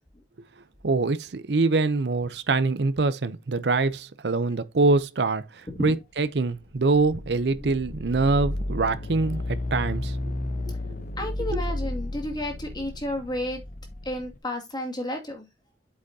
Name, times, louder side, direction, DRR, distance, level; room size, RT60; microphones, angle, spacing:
voice 1, 0.8-5.4 5.8-10.1 11.5-11.6, right 3 dB, 75° right, 0.7 m, -24 dB
sound 1, 6.4-14.4, left 1 dB, 50° left, 0.9 m, -32 dB
voice 2, 11.2-13.6 14.1-15.5, left 1 dB, 25° left, 2.3 m, -32 dB
8.3 x 7.7 x 2.8 m
head